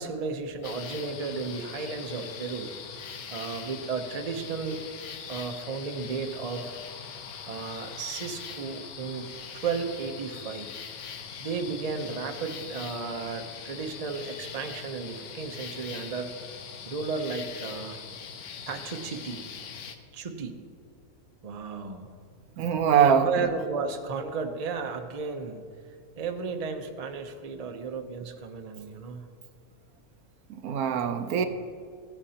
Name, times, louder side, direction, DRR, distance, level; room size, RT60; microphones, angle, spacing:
voice 1, 0.0-2.7 3.3-4.8 5.3-6.8 7.5-9.3 9.5-10.7 11.4-18.0 18.6-19.4 20.1-20.6 21.4-22.1 22.9-25.6 26.2-29.3, right 5 dB, 40° right, 5 dB, 0.6 m, -34 dB
sound 1, 0.6-20.0, left 6 dB, 85° left, 1.2 m, -42 dB
voice 2, 22.6-23.3 30.6-31.5, right 8 dB, 85° right, 8 dB, 1.1 m, -22 dB
15.5 x 8.8 x 2.8 m, 2.2 s
omnidirectional pair, 1.5 m